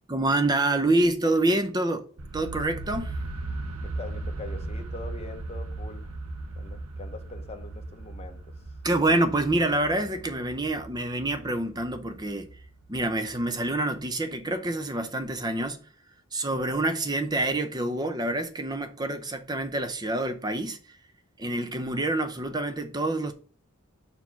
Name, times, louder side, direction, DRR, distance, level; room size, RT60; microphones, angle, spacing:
voice 1, 0.1-2.1 2.3-3.1 8.8-12.5 12.9-15.8 16.3-20.8 21.4-23.3, right 2 dB, 20° right, 0.7 m, -27 dB
sound 1, 2.2-14.0, right 2 dB, 90° right, 0.8 m, -38 dB
voice 2, 3.8-6.1 6.6-8.5, left 2 dB, 30° left, 0.9 m, -43 dB
5.5 x 4.6 x 5.8 m
head